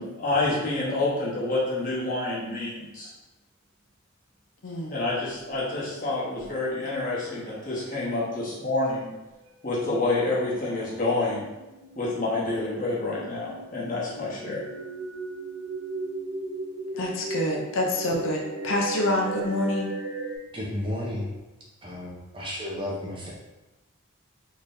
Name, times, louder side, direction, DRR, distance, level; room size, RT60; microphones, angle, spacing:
voice 1, 0.0-3.1 4.9-9.1 9.6-11.4 12.0-14.6, left 2 dB, 40° left, -7 dB, 1.2 m, -28 dB
sound 1, 5.2-5.8 6.4-6.5 7.9-8.3 8.6-9.5 10.8-20.4, right 2 dB, 65° right, 0.5 m, -37 dB
voice 2, 16.9-19.9, left 1 dB, 75° left, 0 dB, 0.6 m, -27 dB
voice 3, 20.5-21.3 21.8-23.3, left 1 dB, 25° right, -5 dB, 0.7 m, -32 dB
3.8 x 3.2 x 2.6 m, 1.0 s
head